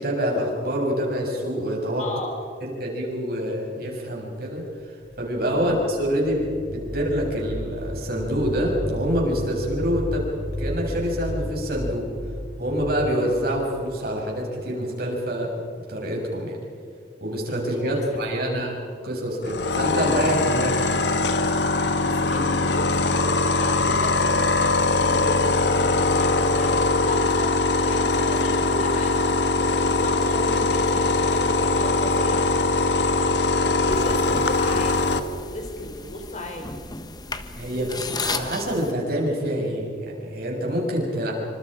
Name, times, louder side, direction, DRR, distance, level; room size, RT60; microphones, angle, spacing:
voice 1, 0.0-2.0 2.6-10.3 10.6-12.1 12.6-15.5 15.9-16.6 17.2-21.2 37.6-41.3, equal, 60° right, -1 dB, 7.4 m, -26 dB
voice 2, 2.0-2.4 5.5-5.8 17.8-18.3 22.0-32.5 33.0-35.1 35.4-36.8, left 1 dB, 40° left, 2 dB, 3.9 m, -35 dB
sound 1, 5.0-14.8, equal, 25° right, 4.0 m, -34 dB
sound 2, 19.4-35.2, left 3 dB, 75° left, 1.5 m, -21 dB
sound 3, 33.9-38.9, left 3 dB, 25° left, 1.2 m, -34 dB
28.0 x 25.5 x 5.1 m, 2.5 s
head